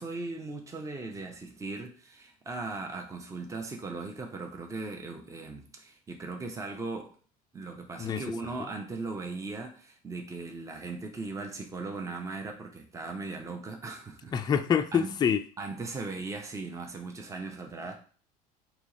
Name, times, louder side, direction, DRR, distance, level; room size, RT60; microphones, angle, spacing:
voice 1, 0.0-7.1 7.5-14.3 14.9-15.1 15.6-18.0, right 3 dB, 15° right, 0.8 m, -38 dB
voice 2, 14.3-15.4, left 7 dB, 20° left, 0.4 m, -26 dB
3.4 x 2.9 x 4.1 m
hypercardioid pair, 90°, 19 cm